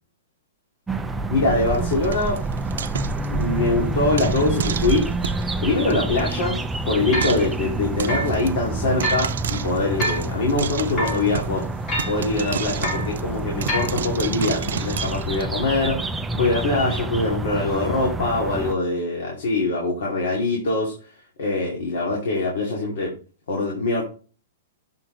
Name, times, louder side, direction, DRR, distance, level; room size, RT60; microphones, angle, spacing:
sound 1, 0.9-18.8, right 2 dB, 5° right, 0.3 m, -28 dB
voice 1, 1.3-2.4 3.3-5.1 5.6-6.6 6.9-11.6 12.1-16.0 16.3-20.9 21.4-23.1 23.5-24.0, left 2 dB, 60° left, -2 dB, 2.4 m, -23 dB
Frying (food), 1.7-3.7 4.2-5.5 5.9-6.0 6.2-6.3 6.6-6.7 7.2-7.5 8.0-8.5 9.0-11.6 12.0-15.4, right 8 dB, 90° right, 0.5 m, -32 dB
sound 2, 5.5-5.6 6.2-6.3 7.1-7.4 8.1-8.3 9.0-9.3 10.0-10.3 11.0-11.2 11.9-12.2 12.8-13.1 13.7-14.0, right 1 dB, 15° left, 1.9 m, -26 dB
6.9 x 4.6 x 3.9 m, 0.36 s
hypercardioid pair, 170°, 0 cm